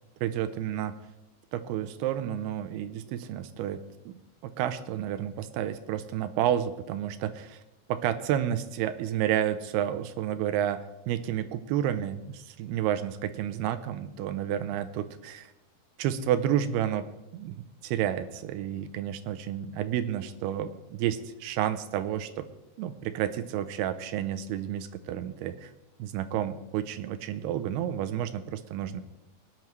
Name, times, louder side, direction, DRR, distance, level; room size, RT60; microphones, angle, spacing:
voice 1, 0.2-0.9 1.5-7.6 7.9-15.5 16.0-17.1 17.3-22.5 22.8-25.7 26.0-29.0, right 10 dB, 85° right, 11 dB, 2.5 m, -30 dB
19.0 x 10.5 x 3.1 m, 0.93 s
omnidirectional pair, 4.8 m